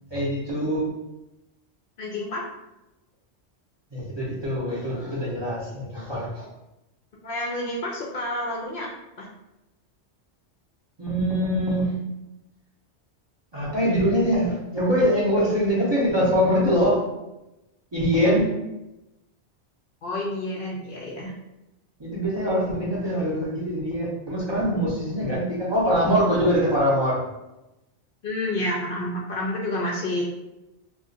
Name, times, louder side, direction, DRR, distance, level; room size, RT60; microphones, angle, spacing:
voice 1, 0.1-0.9 3.9-6.5 11.0-12.0 13.5-17.0 17.9-18.5 22.0-27.2, equal, 25° right, -7 dB, 0.7 m, -23 dB
voice 2, 2.0-2.4 7.2-8.9 9.2-9.3 20.0-21.3 28.2-30.2, left 1 dB, 60° left, -2 dB, 0.7 m, -29 dB
2.4 x 2.4 x 3.7 m, 0.94 s
omnidirectional pair, 1.2 m